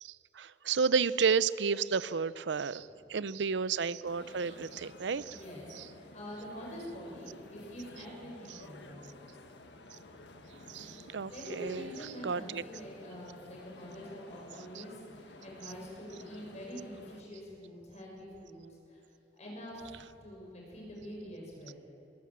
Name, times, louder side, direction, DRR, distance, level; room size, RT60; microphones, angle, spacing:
voice 1, 0.0-5.4 5.8-5.9 10.7-11.9 12.2-12.6, right 5 dB, 85° right, 17 dB, 0.6 m, -31 dB
voice 2, 2.8-3.2 5.3-5.7 5.9-9.2 10.5-10.6 11.3-19.0 19.3-21.8, equal, 40° left, -2 dB, 6.4 m, -46 dB
sound 1, 4.0-17.2, left 2 dB, 75° left, 1.5 m, -53 dB
21.5 x 19.5 x 7.5 m, 2.7 s
head